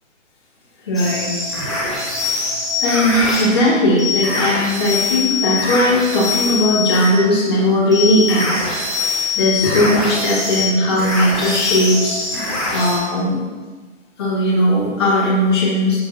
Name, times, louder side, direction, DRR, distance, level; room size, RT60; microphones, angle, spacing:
voice 1, 0.9-1.3 2.8-8.7 9.3-12.2 12.7-13.4 14.2-16.0, left 1 dB, 20° left, -10 dB, 2.8 m, -17 dB
sound 1, 0.9-3.5 4.0-7.1 7.9-12.9, left 3 dB, ahead, 0.6 m, -22 dB
16.5 x 7.0 x 3.1 m, 1.3 s
hypercardioid pair, 180°, 38 cm